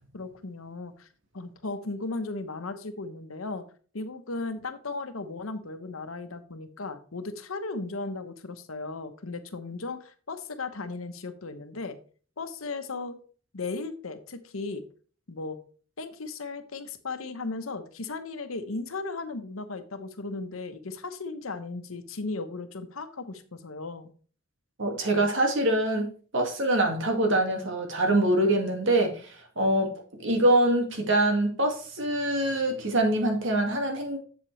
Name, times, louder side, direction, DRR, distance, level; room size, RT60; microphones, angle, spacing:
voice 1, 0.1-1.1 1.3-3.6 3.9-12.0 12.4-13.2 13.5-14.8 15.3-15.6 16.0-24.1, left 3 dB, 90° left, 9 dB, 1.0 m, -36 dB
voice 2, 24.8-29.9 30.2-34.2, right 1 dB, 65° right, 3 dB, 2.1 m, -24 dB
7.6 x 7.6 x 3.2 m, 0.41 s
head